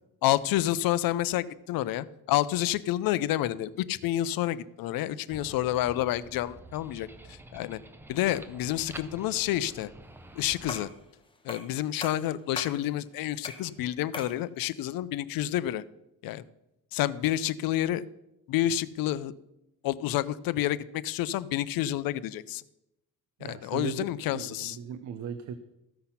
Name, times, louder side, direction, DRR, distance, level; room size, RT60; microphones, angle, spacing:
voice 1, 0.2-7.8 8.1-9.9 10.4-10.9 11.4-15.8 16.2-16.4 16.9-18.0 18.5-19.3 19.8-22.6 23.4-24.8, left 13 dB, 90° left, 17 dB, 0.6 m, -29 dB
sound 1, 5.3-10.8, right 1 dB, 5° right, 0.5 m, -48 dB
sound 2, 10.7-11.0 11.5-11.7 12.0-12.8 13.4-13.7 14.1-14.4, left 3 dB, 15° left, 1.0 m, -39 dB
voice 2, 23.4-25.6, right 7 dB, 60° right, 10 dB, 0.7 m, -38 dB
14.5 x 5.8 x 5.7 m, 0.88 s
cardioid pair, 145°, 34 cm